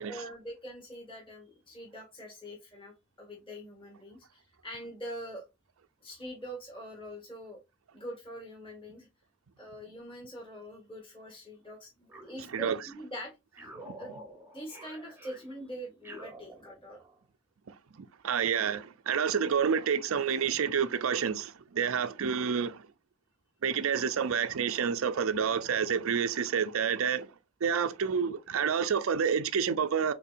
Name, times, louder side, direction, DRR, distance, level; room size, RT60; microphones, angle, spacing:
voice 1, 0.0-5.5 6.0-7.6 7.9-9.1 9.6-13.3 14.0-17.0, equal, 25° left, 1.9 m, -44 dB
sound 1, 12.1-13.1 13.6-17.2, right 1 dB, 10° right, 0.8 m, -49 dB
voice 2, 12.5-12.9 13.8-13.9 18.0-22.9 23.6-27.3 27.6-30.1, right 7 dB, 75° right, 0.5 m, -29 dB
5.5 x 3.8 x 2.5 m
head